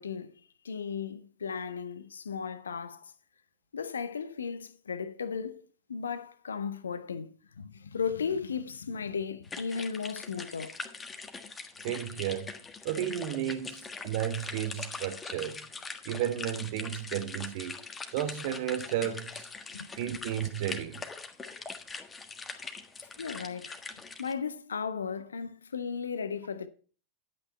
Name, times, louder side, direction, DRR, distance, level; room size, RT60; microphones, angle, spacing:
voice 1, 0.0-3.1 3.7-5.6 5.9-10.8 19.7-19.9 22.5-22.7 23.2-23.8 24.2-26.7, left 6 dB, 70° left, 0.9 m, -36 dB
sound 1, 9.4-24.3, left 4 dB, 15° left, 1.4 m, -42 dB
voice 2, 11.8-12.5 12.8-15.6 16.0-17.8 18.1-19.5 20.0-21.0, right 11 dB, 50° right, 1.1 m, -33 dB
11.0 x 8.6 x 4.3 m
figure-of-eight pair, 90°, 0 cm